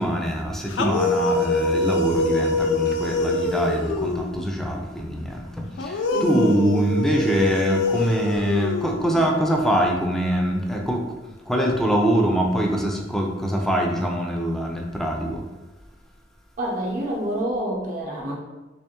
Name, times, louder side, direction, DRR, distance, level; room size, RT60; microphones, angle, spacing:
voice 1, 0.0-15.4, equal, ahead, 0 dB, 0.4 m, -24 dB
sound 1, 0.7-4.4 5.8-9.4, left 2 dB, 70° left, 0.4 m, -24 dB
voice 2, 6.1-6.8 16.6-18.4, right 1 dB, 45° right, -2 dB, 0.8 m, -27 dB
3.4 x 3.0 x 2.9 m, 1.1 s
head